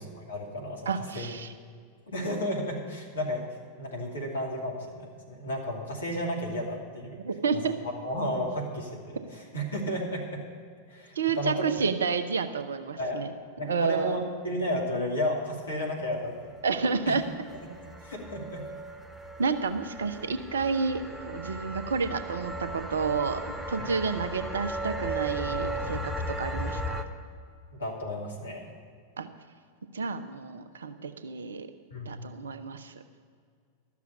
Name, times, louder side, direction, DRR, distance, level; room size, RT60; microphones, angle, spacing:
voice 1, 0.0-0.8 1.1-1.3 2.1-3.4 3.8-7.2 7.5-7.6 8.0-10.3 10.9-11.6 13.0-13.2 13.6-16.5 17.1-17.2 18.0-18.6 23.8-23.9 27.8-28.7 31.9-32.3, equal, 70° left, -1 dB, 2.7 m, -32 dB
voice 2, 0.9-1.5 7.2-7.7 11.1-13.3 13.6-14.2 16.6-17.2 19.4-23.4 23.7-27.0 29.2-29.3 29.9-31.7 32.1-32.9, right 5 dB, 70° right, 10 dB, 0.8 m, -30 dB
sound 1, 16.5-27.0, right 1 dB, 5° right, 1.0 m, -36 dB
13.0 x 7.2 x 8.4 m, 2.2 s
figure-of-eight pair, 90°, 0 cm